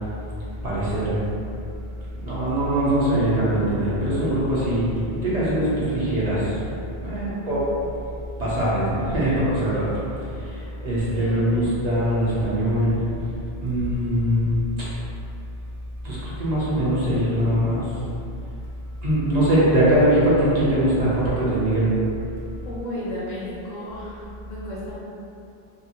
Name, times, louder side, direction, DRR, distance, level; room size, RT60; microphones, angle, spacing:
voice 1, 0.6-1.1 2.2-4.9 5.2-6.6 7.0-7.7 8.4-9.9 10.4-13.0 13.6-14.5 16.0-17.9 19.0-21.9, right 1 dB, 45° right, -9 dB, 0.7 m, -22 dB
voice 2, 7.1-7.5 11.1-11.7 22.6-25.0, equal, 60° left, -7 dB, 0.6 m, -34 dB
2.6 x 2.4 x 2.8 m, 2.6 s
omnidirectional pair, 1.0 m